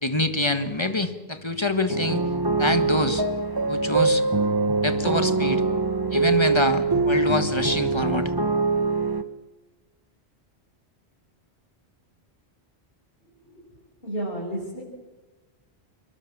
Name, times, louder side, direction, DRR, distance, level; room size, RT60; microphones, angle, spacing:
voice 1, 0.0-2.2 2.6-3.3 3.7-4.2 4.8-5.6 6.1-8.3, left 2 dB, 25° left, 9 dB, 1.7 m, -25 dB
sound 1, 1.9-9.2, right 3 dB, 20° right, 1.1 m, -23 dB
voice 2, 14.0-14.8, right 1 dB, 60° left, -4 dB, 6.4 m, -31 dB
26.5 x 22.0 x 7.5 m, 1.2 s
omnidirectional pair, 1.1 m